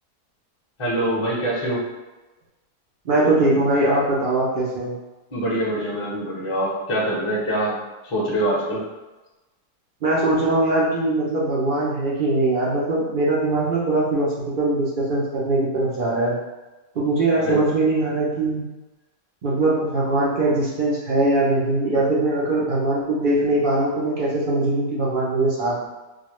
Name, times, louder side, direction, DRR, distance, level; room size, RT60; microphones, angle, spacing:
voice 1, 0.8-1.8 5.3-7.8 8.0-8.8 17.3-17.6, right 1 dB, 25° left, -6 dB, 0.6 m, -24 dB
voice 2, 3.0-4.9 10.0-16.4 16.9-18.6 19.4-25.9, right 2 dB, 60° right, -6 dB, 0.5 m, -21 dB
4.2 x 2.2 x 3.0 m, 1.1 s
omnidirectional pair, 1.8 m